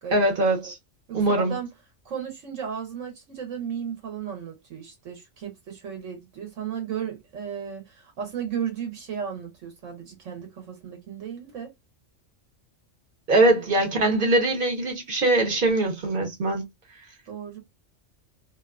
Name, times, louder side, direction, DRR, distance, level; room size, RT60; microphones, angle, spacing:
voice 1, 0.1-0.8 1.1-1.5 13.3-16.7, right 2 dB, 50° right, 1.0 m, -22 dB
voice 2, 1.1-1.7 2.0-11.7 13.4-13.8 17.3-17.6, right 8 dB, 80° right, 1.2 m, -35 dB
2.6 x 2.4 x 2.3 m
omnidirectional pair, 1.3 m